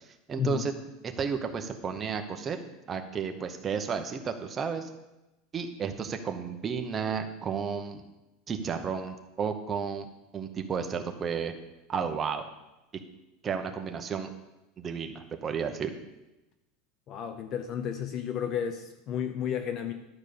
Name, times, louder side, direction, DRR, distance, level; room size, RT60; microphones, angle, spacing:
voice 1, 0.3-0.7 1.0-2.6 2.9-4.9 5.5-8.0 8.5-10.1 10.3-11.5 11.9-12.4 13.4-14.3 14.8-15.9, right 6 dB, 20° right, 5 dB, 0.9 m, -32 dB
voice 2, 17.1-19.9, left 8 dB, 35° left, 8 dB, 0.6 m, -32 dB
11.5 x 5.2 x 6.8 m, 0.99 s
supercardioid pair, 165°, 0 cm